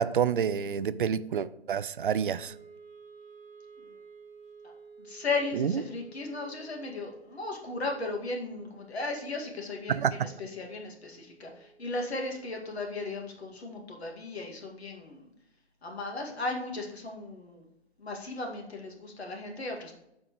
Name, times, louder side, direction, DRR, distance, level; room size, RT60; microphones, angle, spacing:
voice 1, 0.0-2.5 5.5-5.7 9.9-10.3, right 8 dB, 50° right, 15 dB, 0.4 m, -28 dB
Wind instrument woodwind instrument, 2.0-14.2, right 5 dB, 10° left, 2.2 m, -54 dB
voice 2, 5.0-15.2 15.8-17.7 18.0-19.9, left 3 dB, 70° left, 2 dB, 2.2 m, -36 dB
13.5 x 4.6 x 3.1 m, 0.83 s
figure-of-eight pair, 150°, 34 cm